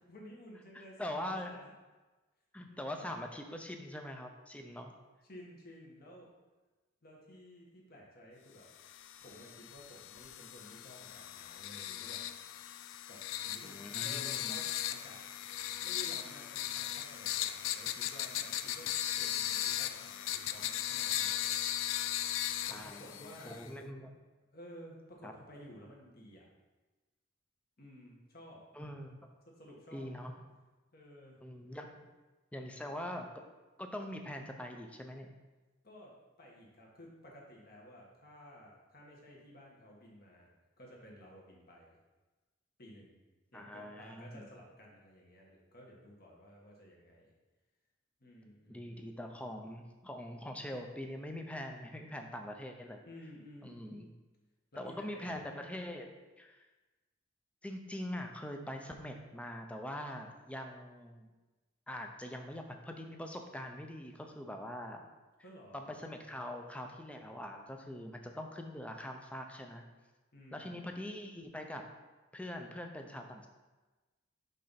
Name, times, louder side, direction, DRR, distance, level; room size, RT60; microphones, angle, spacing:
voice 1, 0.1-1.7 2.7-3.1 5.2-6.3 7.0-8.7 9.2-12.2 13.1-15.2 15.7-18.9 19.2-21.6 22.7-23.6 24.5-26.5 27.8-28.6 29.4-30.1 30.9-31.4 35.8-42.0 42.8-43.2 43.5-47.3 48.2-49.3 53.0-53.8 54.7-55.3 65.4-65.8 70.3-70.8, equal, 50° left, -2 dB, 1.5 m, -54 dB
voice 2, 1.0-1.6 2.5-4.9 13.6-14.6 22.7-24.1 25.2-25.3 28.7-29.3 29.9-30.3 31.4-32.0 32.5-33.3 33.8-35.3 43.5-44.5 48.7-53.0 53.6-54.1 54.8-56.7 57.6-61.3 61.9-65.0 65.7-69.8 70.5-71.8 72.3-73.5, left 1 dB, 5° left, 3 dB, 0.6 m, -43 dB
sound 1, 8.8-23.7, left 12 dB, 70° left, 0.3 m, -37 dB
5.4 x 3.9 x 5.7 m, 1.2 s
head